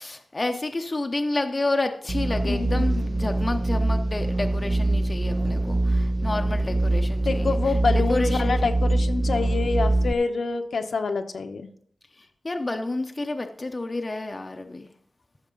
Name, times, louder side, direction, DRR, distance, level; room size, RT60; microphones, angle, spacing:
voice 1, 0.0-7.6 7.9-8.5 12.4-14.9, left 2 dB, 25° left, 6 dB, 0.7 m, -29 dB
sound 1, 2.1-10.1, right 2 dB, 20° right, 0.4 m, -24 dB
voice 2, 2.4-3.2 7.2-11.7, left 4 dB, 65° left, 6 dB, 0.9 m, -27 dB
14.0 x 6.5 x 3.9 m, 0.62 s
wide cardioid pair, 140°, 0 cm